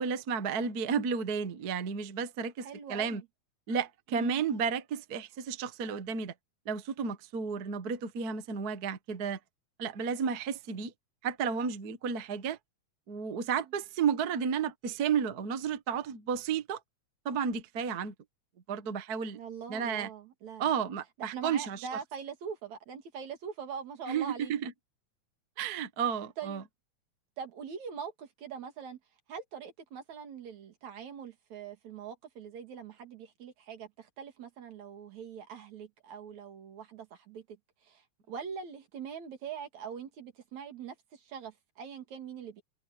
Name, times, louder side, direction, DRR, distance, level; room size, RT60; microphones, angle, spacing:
voice 1, 0.0-3.2 3.7-6.3 6.6-9.4 9.8-10.9 11.2-12.6 13.1-16.8 17.2-18.1 18.7-19.4 19.7-20.1 20.6-21.9 24.1-24.7 25.6-26.6, right 6 dB, 45° right, 1.4 m, -32 dB
voice 2, 2.6-3.3 4.1-4.4 19.3-20.7 21.2-24.5 26.4-26.7 27.4-29.0 29.3-37.6 37.8-42.6, right 7 dB, 75° right, 3.6 m, -43 dB
omnidirectional pair, 3.3 m